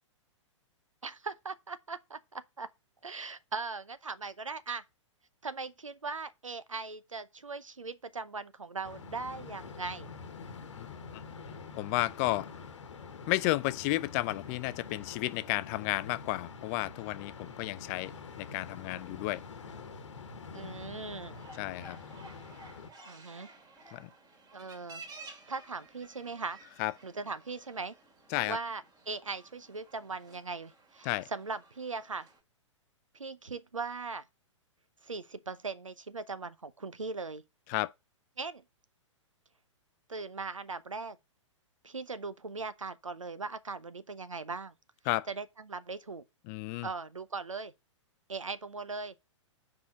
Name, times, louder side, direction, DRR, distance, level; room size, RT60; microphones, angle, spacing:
voice 1, 1.0-2.7 3.0-4.8 5.4-10.1 20.5-21.4 23.1-23.5 24.5-25.0 25.5-26.6 27.0-27.9 28.5-32.3 33.1-34.2 35.0-37.4 38.4-38.6 40.1-41.2 41.8-44.7 45.3-46.2 46.8-47.7 48.3-49.1, right 4 dB, 85° right, 0.7 m, -39 dB
sound 1, 8.8-22.9, left 5 dB, 70° left, 1.2 m, -46 dB
voice 2, 10.8-11.2 11.5-12.5 13.3-19.4 21.6-22.0 23.9-24.1 26.8-26.9 28.3-28.6 31.0-31.3 37.7-37.9 45.1-45.3 46.5-46.9, left 18 dB, 30° left, 0.4 m, -32 dB
sound 2, 21.3-32.4, right 2 dB, 20° right, 2.3 m, -54 dB
6.1 x 4.9 x 5.6 m
figure-of-eight pair, 115°, 16 cm